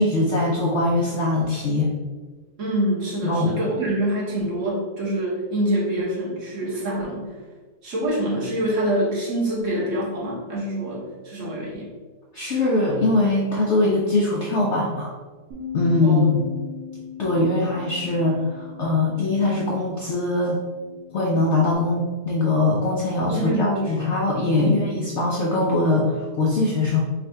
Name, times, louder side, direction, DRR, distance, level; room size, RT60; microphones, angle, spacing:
voice 1, 0.0-1.9 3.2-3.6 12.3-15.1 15.7-16.4 17.2-20.6 21.1-27.0, left 2 dB, 65° left, -3 dB, 0.7 m, -22 dB
voice 2, 2.6-7.3 7.8-11.9 16.0-16.3 23.3-23.9 24.6-24.8, right 1 dB, 55° right, -5 dB, 1.3 m, -25 dB
Bass guitar, 15.5-21.8, left 8 dB, 75° right, 1.5 m, -39 dB
3.6 x 2.4 x 4.3 m, 1.3 s
omnidirectional pair, 1.7 m